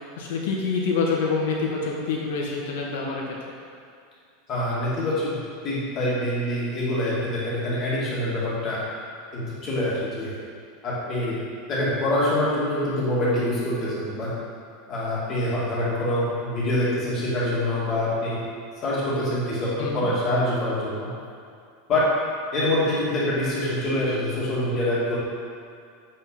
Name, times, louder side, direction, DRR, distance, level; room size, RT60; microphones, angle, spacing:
voice 1, 0.2-3.4 19.8-20.1, left 4 dB, 75° left, -2 dB, 1.7 m, -26 dB
voice 2, 4.5-5.4 5.6-8.8 9.3-10.4 10.8-11.4 11.7-14.3 14.9-18.4 18.8-21.1 21.9-22.1 22.5-25.2, left 1 dB, 25° left, -8 dB, 2.3 m, -25 dB
7.9 x 5.6 x 5.7 m, 2.4 s
supercardioid pair, 175°, 0 cm